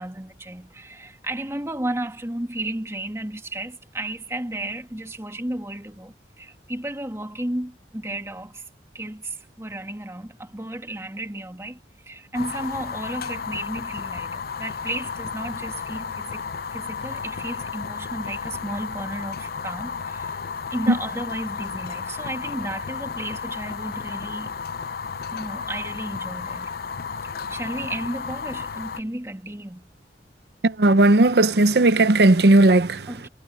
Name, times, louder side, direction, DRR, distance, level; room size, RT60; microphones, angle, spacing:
voice 1, 0.0-8.6 8.9-20.4 20.7-24.5 25.3-26.7 27.2-29.8 33.1-33.3, right 1 dB, 15° right, 2.3 m, -33 dB
Fire, 12.3-29.0, left 5 dB, 55° left, 0.5 m, -33 dB
voice 2, 30.6-33.1, right 2 dB, 65° right, 0.8 m, -16 dB
head